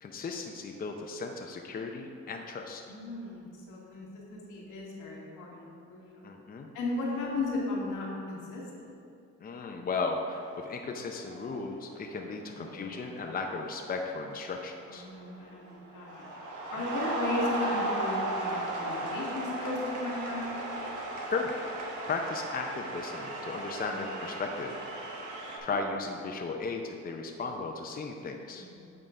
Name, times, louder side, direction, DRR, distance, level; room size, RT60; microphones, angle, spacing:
voice 1, 0.0-2.8 6.2-6.7 9.4-15.1 16.8-16.9 21.3-21.5 22.1-24.8 25.6-28.7, left 4 dB, 30° left, 2 dB, 0.6 m, -35 dB
voice 2, 2.9-6.2 6.7-8.6 12.7-12.9 14.9-16.3 16.7-20.6 23.9-24.0 25.7-25.8 28.7-28.9, left 2 dB, 85° left, -4 dB, 1.7 m, -36 dB
sound 1, 10.3-10.8 11.1-11.6 12.5-12.7 13.1-15.3 15.7-25.6, right 2 dB, 85° right, 1.1 m, -36 dB
7.7 x 3.8 x 4.8 m, 2.5 s
cardioid pair, 90°, 30 cm